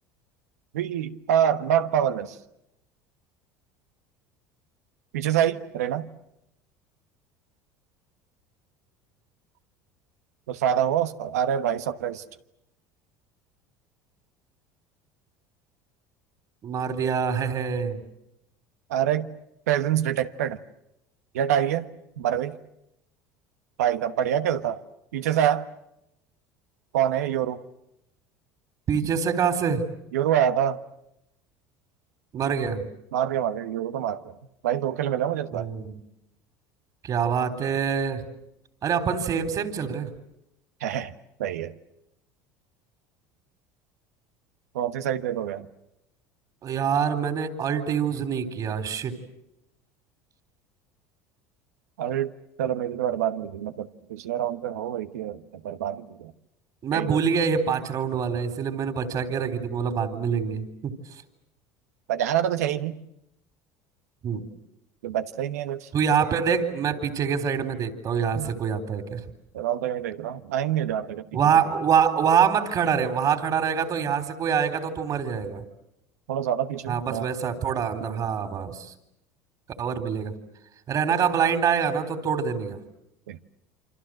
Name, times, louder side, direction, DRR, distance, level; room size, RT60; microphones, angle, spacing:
voice 1, 0.7-2.3 5.1-6.1 10.5-12.2 18.9-19.3 19.7-20.6 21.3-21.9 22.2-22.6 23.8-24.8 25.1-25.7 26.9-27.6 30.1-30.8 33.1-34.3 34.6-35.7 40.8-41.1 41.4-41.7 44.7-45.7 52.0-52.3 52.6-56.3 56.9-57.2 62.1-63.0 65.0-65.9 68.3-68.5 69.5-71.2 76.3-77.3 83.3-83.4, right 10 dB, 85° right, 10 dB, 1.3 m, -26 dB
voice 2, 16.6-18.0 28.9-29.9 32.3-32.9 35.5-36.0 37.0-38.2 38.8-40.1 46.6-49.2 56.8-60.9 64.2-64.5 65.9-69.2 71.3-75.6 76.9-78.9 79.8-80.4 80.9-82.8, right 7 dB, 45° right, 10 dB, 3.9 m, -25 dB
28.5 x 25.5 x 7.7 m, 0.83 s
hypercardioid pair, 85°, 8 cm